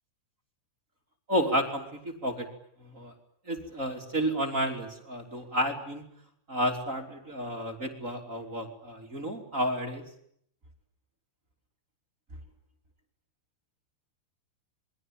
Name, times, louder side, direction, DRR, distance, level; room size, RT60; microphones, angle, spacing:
voice 1, 1.3-2.5 2.8-3.1 3.4-6.0 6.5-10.0, equal, 20° right, 3 dB, 2.7 m, -31 dB
27.0 x 23.5 x 9.2 m, 0.70 s
omnidirectional pair, 5.6 m